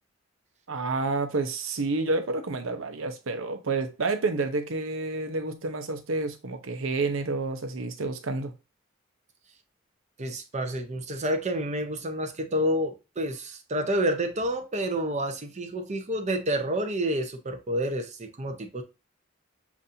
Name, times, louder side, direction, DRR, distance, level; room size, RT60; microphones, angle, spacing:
voice 1, 0.7-8.5, right 3 dB, 85° right, 0.8 m, -29 dB
voice 2, 10.2-18.8, right 1 dB, 35° right, 0.8 m, -29 dB
7.1 x 2.6 x 2.7 m
head